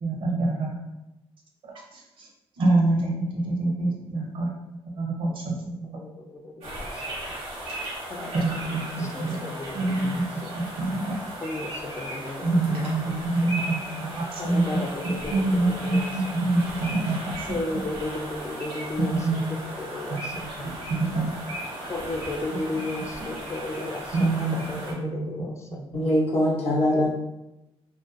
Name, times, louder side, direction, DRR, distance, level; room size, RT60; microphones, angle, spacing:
voice 1, 0.0-0.7 1.6-2.3 2.6-4.5 4.9-6.0 8.3-9.4 9.7-11.2 12.4-14.8 15.3-17.9 19.0-19.6 20.1-21.6 24.1-25.8, right 2 dB, 60° right, -1 dB, 0.6 m, -26 dB
voice 2, 6.0-7.3 8.1-10.1 11.4-13.2 14.4-16.1 17.5-19.2 19.5-20.7 21.9-25.8 26.9-27.1, left 2 dB, 30° left, 2 dB, 0.4 m, -35 dB
sound 1, 6.6-24.9, right 1 dB, 80° right, 1.0 m, -36 dB
voice 3, 25.9-27.1, left 1 dB, 75° left, -3 dB, 0.7 m, -22 dB
2.5 x 2.2 x 2.5 m, 0.95 s
cardioid pair, 135°, 10 cm